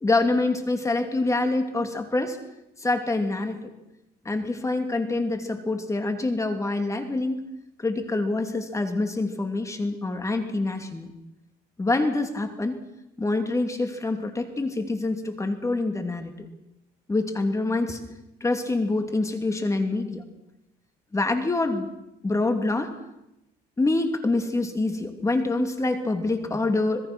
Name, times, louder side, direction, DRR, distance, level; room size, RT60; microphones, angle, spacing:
voice 1, 0.0-2.4 2.8-3.7 4.2-7.4 7.8-11.1 11.8-12.8 13.2-16.5 17.1-18.0 18.4-20.2 21.1-21.9 22.2-22.9 23.8-27.1, left 2 dB, 20° left, 6 dB, 2.7 m, -26 dB
26.5 x 20.5 x 6.2 m, 0.87 s
cardioid pair, 110°, 17 cm